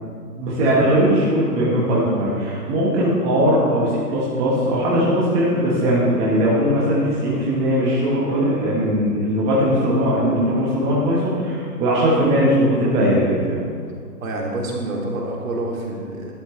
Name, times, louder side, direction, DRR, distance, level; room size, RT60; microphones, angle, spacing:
voice 1, 0.4-13.6, equal, 15° right, -6 dB, 1.3 m, -19 dB
voice 2, 14.2-16.3, right 2 dB, 55° right, -2 dB, 2.9 m, -27 dB
12.5 x 12.0 x 3.3 m, 2.1 s
hypercardioid pair, 155°, 49 cm